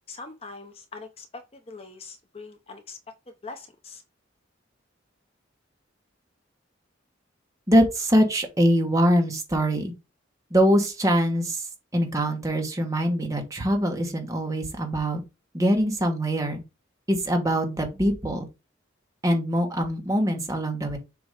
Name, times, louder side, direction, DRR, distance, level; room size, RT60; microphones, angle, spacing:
voice 1, 0.1-3.0 3.3-4.0, left 3 dB, 30° left, 0.8 m, -42 dB
voice 2, 7.7-9.9 10.5-11.7 11.9-15.2 15.5-16.6 17.1-18.4 19.2-21.0, equal, 15° right, 1.5 m, -23 dB
7.1 x 3.1 x 4.9 m
head